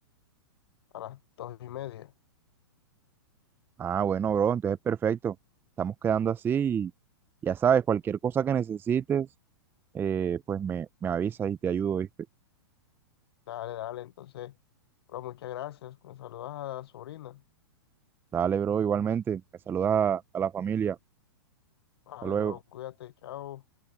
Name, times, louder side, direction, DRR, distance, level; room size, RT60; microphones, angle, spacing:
voice 1, 0.9-2.1 13.5-14.5 15.1-17.4 22.1-23.6, left 13 dB, 65° left, 0.7 m, -40 dB
voice 2, 3.8-5.4 5.8-6.9 7.4-9.3 9.9-12.1 18.3-19.4 19.7-21.0 22.2-22.5, right 8 dB, 15° right, 0.5 m, -27 dB
hypercardioid pair, 125°, 14 cm